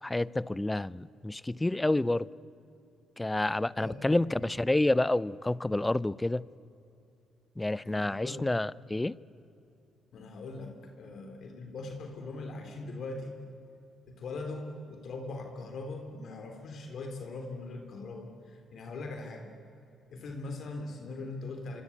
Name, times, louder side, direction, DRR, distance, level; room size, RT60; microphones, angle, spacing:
voice 1, 0.0-2.3 3.2-6.5 7.6-9.2, left 2 dB, 15° left, 21 dB, 0.5 m, -29 dB
voice 2, 3.8-4.5 7.8-8.5 10.1-13.4 14.1-19.5 20.1-21.8, left 3 dB, 60° left, 4 dB, 3.3 m, -41 dB
26.0 x 24.5 x 8.6 m, 2.7 s
cardioid pair, 90°, 0 cm